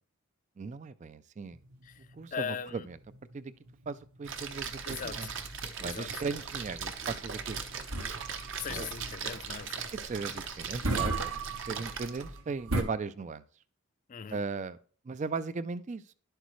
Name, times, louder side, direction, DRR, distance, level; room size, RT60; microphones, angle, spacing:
voice 1, 0.6-1.6 2.1-3.0 3.3-3.5 3.9-5.3 5.8-7.9 8.7-8.9 9.9-13.4 14.3-14.8 15.1-16.0, right 4 dB, 35° right, 0.3 m, -37 dB
sound 1, 1.5-12.8, right 2 dB, 75° right, 1.3 m, -38 dB
voice 2, 2.3-2.9 4.9-5.3 5.8-6.1 8.6-9.9 14.1-14.4, left 7 dB, 35° left, 0.4 m, -39 dB
Splash splatter, 4.2-12.4, right 5 dB, 55° right, 0.9 m, -39 dB
11.0 x 8.0 x 3.1 m
head